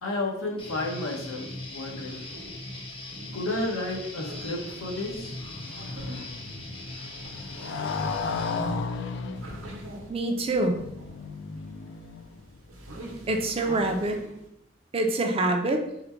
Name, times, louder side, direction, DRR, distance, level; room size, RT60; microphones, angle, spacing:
voice 1, 0.0-2.2 3.3-5.4, left 2 dB, 90° left, -1 dB, 1.0 m, -32 dB
Guitar, 0.6-8.6, left 2 dB, 25° left, 0.7 m, -40 dB
sound 1, 1.7-14.5, right 1 dB, 80° right, 0.9 m, -46 dB
Motorcycle, 4.5-12.6, left 4 dB, 60° left, 0.3 m, -35 dB
voice 2, 10.1-10.8 13.3-14.2 14.9-15.8, right 2 dB, 30° right, 4 dB, 0.4 m, -26 dB
3.9 x 2.2 x 4.3 m, 0.81 s
head